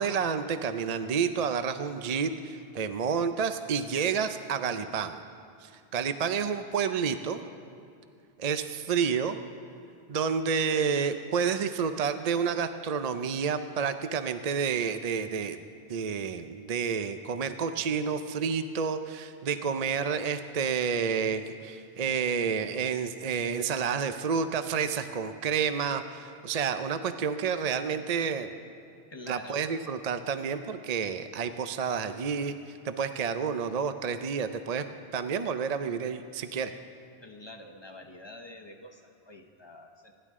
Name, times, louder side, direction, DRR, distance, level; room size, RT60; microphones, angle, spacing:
voice 1, 0.0-5.2 5.6-7.4 8.4-9.4 10.1-15.6 15.9-28.6 29.3-32.6 32.8-34.9 35.1-36.7, right 6 dB, 45° right, 9 dB, 0.6 m, -29 dB
voice 2, 29.1-29.6 37.2-40.1, left 1 dB, 25° left, 4 dB, 1.0 m, -47 dB
27.5 x 11.5 x 3.7 m, 2.5 s
omnidirectional pair, 1.1 m